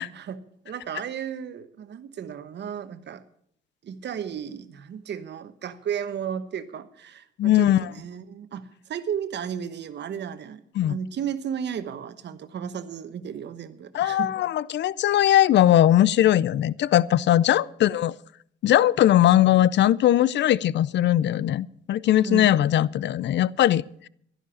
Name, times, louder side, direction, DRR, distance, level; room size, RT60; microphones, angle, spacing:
voice 1, 0.0-3.2 3.8-10.6 10.9-14.3 22.2-22.7, right 8 dB, 60° right, 12 dB, 1.2 m, -34 dB
voice 2, 7.4-7.9 10.8-11.0 13.9-18.1 18.6-24.1, left 12 dB, 65° left, 22 dB, 0.5 m, -20 dB
12.0 x 11.5 x 7.0 m, 0.67 s
cardioid pair, 90°, 20 cm